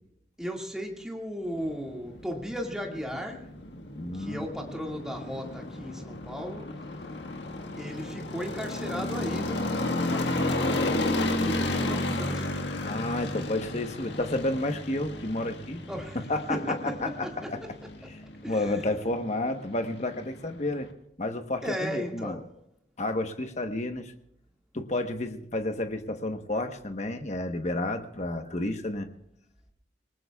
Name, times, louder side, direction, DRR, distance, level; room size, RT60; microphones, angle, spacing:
voice 1, 0.4-3.5 4.1-6.7 7.8-12.7 15.9-16.2 16.5-17.2 17.4-17.5 18.4-18.8 21.6-22.5, equal, 5° right, 0 dB, 2.0 m, -36 dB
sound 1, 1.6-20.9, left 2 dB, 70° left, 1.7 m, -33 dB
voice 2, 3.9-4.5 12.8-15.8 16.3-17.1 17.5-17.6 18.1-18.2 18.5-20.9 21.2-22.4 23.0-24.1 24.7-29.1, left 2 dB, 40° left, 6 dB, 1.1 m, -31 dB
28.0 x 19.0 x 2.4 m, 0.80 s
head